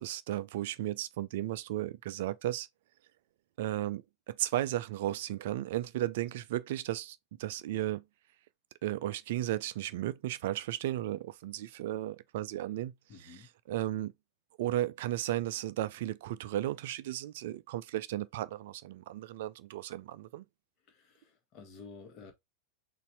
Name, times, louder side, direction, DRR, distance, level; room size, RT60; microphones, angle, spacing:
voice 1, 0.0-2.7 3.6-8.0 8.8-14.1 14.6-20.4, right 14 dB, 55° right, 0.4 m, -35 dB
voice 2, 13.1-13.5 20.9-22.3, left 4 dB, 40° left, 1.2 m, -51 dB
4.1 x 2.6 x 4.4 m
figure-of-eight pair, 90°, 0 cm